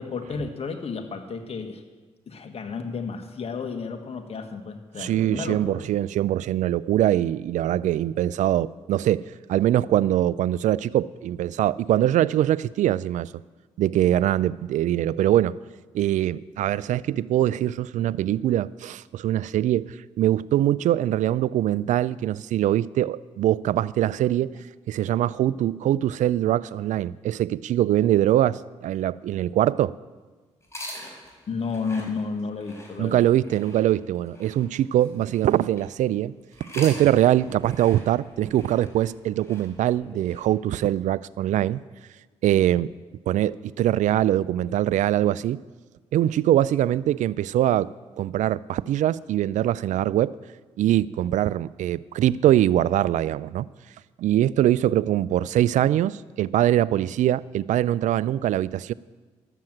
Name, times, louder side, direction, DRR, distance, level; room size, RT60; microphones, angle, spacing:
voice 1, 0.0-1.8 2.3-5.8 31.5-33.3 40.1-40.2, left 5 dB, 55° left, 5 dB, 1.6 m, -32 dB
voice 2, 5.0-13.3 13.8-15.6 15.9-24.5 24.9-29.9 33.0-36.3 36.7-41.8 42.4-42.9 43.3-45.6 46.1-47.9 48.2-50.4 50.8-53.7 54.2-58.9, right 12 dB, 75° right, 20 dB, 0.4 m, -23 dB
sound 1, 30.6-36.0 36.5-40.5, left 1 dB, 20° left, 4.4 m, -44 dB
13.0 x 7.4 x 7.8 m, 1.4 s
supercardioid pair, 60°, 13 cm